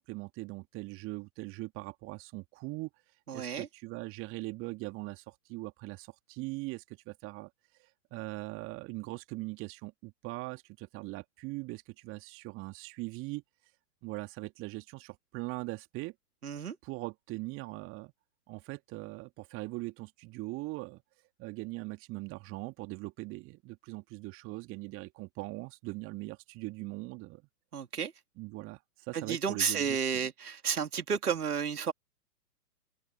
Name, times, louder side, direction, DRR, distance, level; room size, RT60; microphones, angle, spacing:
voice 1, 0.0-2.9 3.3-7.5 8.1-13.4 14.0-16.1 16.8-18.1 18.5-21.0 21.4-27.4 28.4-30.0, right 23 dB, 25° right, 2.2 m, -41 dB
voice 2, 3.3-3.7 16.4-16.8 27.7-28.1 29.1-31.9, right 6 dB, 70° right, 2.7 m, -32 dB
open air
figure-of-eight pair, 115°, 48 cm